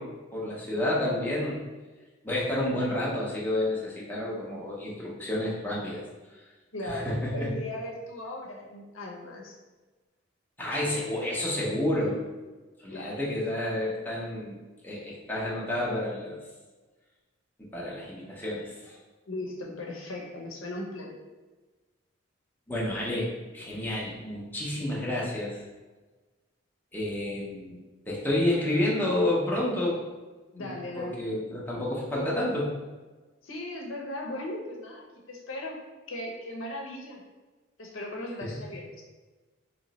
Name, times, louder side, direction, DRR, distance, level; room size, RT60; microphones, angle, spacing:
voice 1, 0.0-1.6 2.2-6.0 6.3-6.4 6.8-7.5 10.6-12.2 12.8-14.6 14.8-16.4 17.6-19.0 22.7-25.6 26.9-27.7 28.1-30.0 30.6-32.7 38.4-38.5, left 1 dB, 10° left, -6 dB, 0.7 m, -30 dB
voice 2, 6.7-9.6 12.9-13.2 19.3-21.1 30.5-31.2 33.4-35.8 36.1-37.2 37.8-39.0, left 1 dB, 80° left, -1 dB, 0.7 m, -37 dB
3.1 x 3.0 x 4.1 m, 1.3 s
head